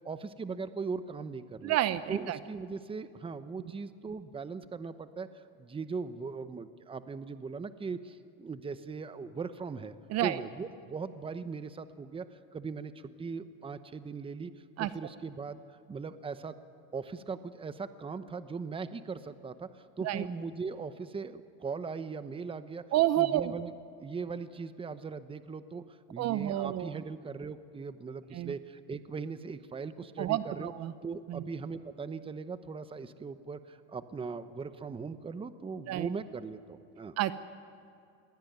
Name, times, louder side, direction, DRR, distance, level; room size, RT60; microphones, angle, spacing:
voice 1, 0.0-1.8 2.1-5.3 5.6-9.9 10.2-12.3 12.5-14.5 14.8-15.6 15.9-16.5 16.9-22.8 23.2-23.7 24.0-25.8 26.1-30.7 31.0-37.2, right 5 dB, 15° right, 12 dB, 0.9 m, -39 dB
voice 2, 1.6-2.4 10.1-10.4 14.8-14.9 20.0-20.3 22.9-23.5 26.2-26.9 28.3-28.5 30.2-30.9 31.3-31.4 35.9-36.1 37.2-37.3, right 14 dB, 50° right, 14 dB, 0.8 m, -29 dB
21.5 x 16.5 x 9.4 m, 2.4 s
supercardioid pair, 115°, 34 cm